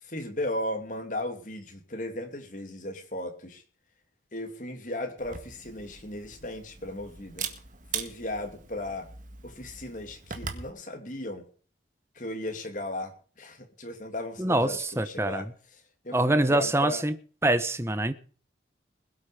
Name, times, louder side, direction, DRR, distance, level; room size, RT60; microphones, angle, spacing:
voice 1, 0.0-3.6 4.3-7.5 7.9-9.1 9.4-11.5 12.1-15.4 16.0-17.0, left 1 dB, 45° left, 5 dB, 2.9 m, -36 dB
Camera, 5.2-10.7, right 6 dB, 45° right, 1.8 m, -40 dB
voice 2, 14.4-15.5 16.1-17.1 17.4-18.1, right 1 dB, 15° right, 12 dB, 1.0 m, -25 dB
21.0 x 8.6 x 5.1 m, 0.42 s
head